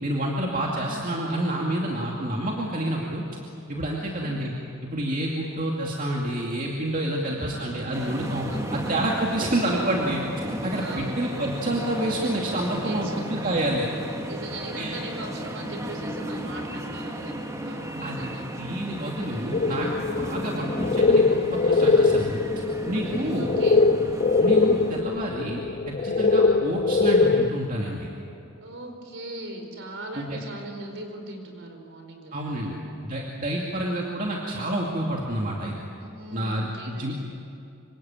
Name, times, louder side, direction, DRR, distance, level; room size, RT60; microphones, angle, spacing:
voice 1, 0.0-3.2 3.7-4.5 4.8-10.2 10.6-13.9 14.8-15.0 18.0-18.3 18.6-21.2 21.5-22.4 22.9-23.5 24.4-25.6 25.9-28.1 30.1-30.4 32.3-32.8 33.0-35.8 36.3-37.2, right 1 dB, 35° right, -2 dB, 2.5 m, -28 dB
voice 2, 3.9-4.3 7.2-7.7 8.5-8.7 9.3-9.4 10.7-11.1 12.8-13.1 14.3-18.5 19.2-19.5 23.0-23.8 28.6-32.8 33.4-33.8 36.0-37.2, right 2 dB, 55° right, 5 dB, 4.7 m, -40 dB
sound 1, 7.9-25.0, equal, 15° right, 1.7 m, -34 dB
sound 2, 19.5-27.5, left 3 dB, 35° left, 0.5 m, -22 dB
26.0 x 25.0 x 9.0 m, 2.7 s
head